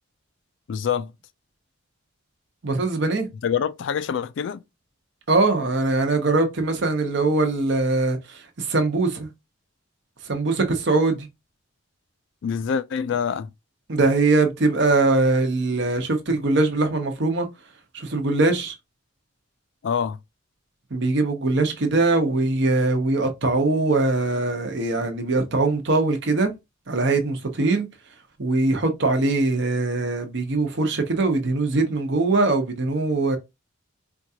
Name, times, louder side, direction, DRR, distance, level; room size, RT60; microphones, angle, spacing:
voice 1, 0.7-1.1 3.4-4.6 12.4-13.5 19.8-20.2, left 7 dB, 60° left, 0.3 m, -25 dB
voice 2, 2.6-3.3 5.3-9.3 10.2-11.3 13.9-17.5 17.9-18.7 20.9-26.5 26.9-27.9 28.4-33.4, right 3 dB, 55° right, 0.8 m, -22 dB
4.4 x 2.4 x 2.7 m
head